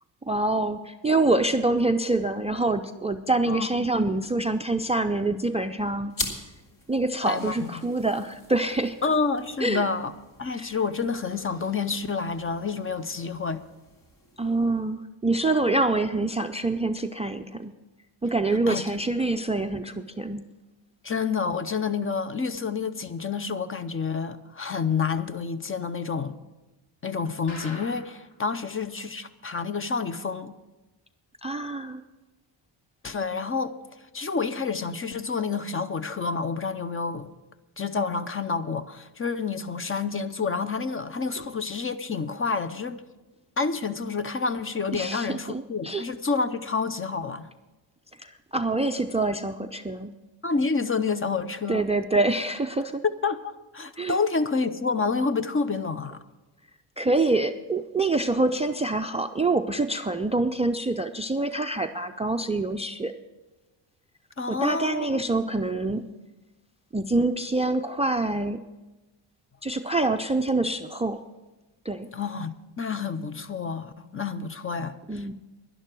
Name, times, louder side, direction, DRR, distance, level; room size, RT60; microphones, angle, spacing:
voice 1, 0.3-6.1 6.9-9.0 9.6-9.9 10.5-10.8 14.4-17.7 18.2-20.4 31.4-32.0 44.9-46.1 48.2-50.1 51.7-53.0 54.0-54.2 57.0-63.1 64.5-66.1 66.9-68.6 69.6-71.2 71.9-72.1 75.1-75.3, right 2 dB, 15° right, 0.4 m, -26 dB
sound 1, 6.1-15.1, left 2 dB, 45° left, 2.2 m, -42 dB
voice 2, 7.2-7.8 9.0-10.1 10.4-13.6 18.7-18.8 21.0-26.4 27.0-30.6 33.0-33.7 34.1-37.3 37.8-43.0 43.6-47.5 50.4-51.9 53.2-56.2 64.4-65.1 65.4-65.6 72.1-75.3, left 4 dB, 30° left, 0.6 m, -29 dB
sound 2, 27.5-28.3 28.7-28.8 29.0-29.1 29.6-29.7, left 2 dB, 80° left, 3.3 m, -42 dB
11.0 x 11.0 x 6.0 m
cardioid pair, 110°, 46 cm